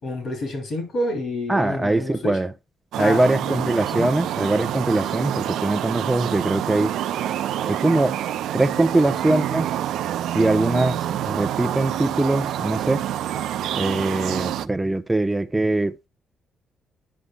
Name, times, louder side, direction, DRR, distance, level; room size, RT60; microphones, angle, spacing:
voice 1, 0.0-2.3 3.0-3.2 3.6-4.1, left 1 dB, 65° left, 3.7 m, -28 dB
voice 2, 1.5-2.5 3.0-7.0 7.6-8.2 8.5-9.7 10.3-13.0 13.7-16.0, right 2 dB, 10° right, 0.8 m, -22 dB
sound 1, 2.9-14.7, right 11 dB, 80° right, 0.4 m, -27 dB
11.5 x 5.3 x 2.3 m
cardioid pair, 90°, 0 cm